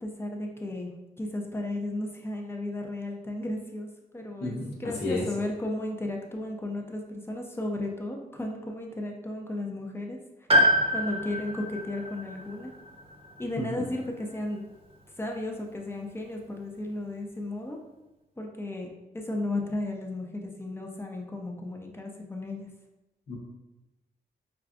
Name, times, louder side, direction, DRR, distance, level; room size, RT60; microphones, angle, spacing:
voice 1, 0.0-0.9 1.2-10.2 10.9-12.7 13.4-14.6 15.2-17.8 18.4-22.7, left 1 dB, 15° left, 1 dB, 0.6 m, -34 dB
voice 2, 4.4-5.2 13.6-13.7 23.3-23.4, left 2 dB, 85° left, -5 dB, 1.0 m, -31 dB
Piano, 10.5-14.6 15.9-16.0, equal, 35° right, 0.9 m, -27 dB
4.7 x 2.3 x 2.4 m, 1.0 s
cardioid pair, 75°, 17 cm